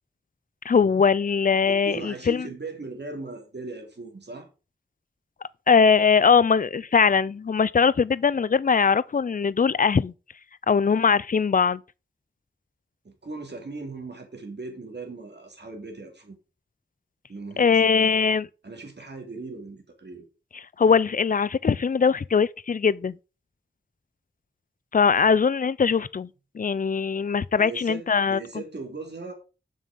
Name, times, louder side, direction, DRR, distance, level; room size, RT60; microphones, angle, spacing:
voice 1, 0.7-2.5 5.7-10.1 10.7-11.8 17.6-18.5 20.8-23.2 24.9-26.3 26.5-28.4, left 6 dB, 45° left, 0.4 m, -21 dB
voice 2, 1.7-4.5 13.0-16.4 17.3-18.1 18.6-20.2 27.6-29.3, right 3 dB, 60° right, 2.7 m, -38 dB
7.4 x 6.3 x 5.2 m
wide cardioid pair, 85°, 20 cm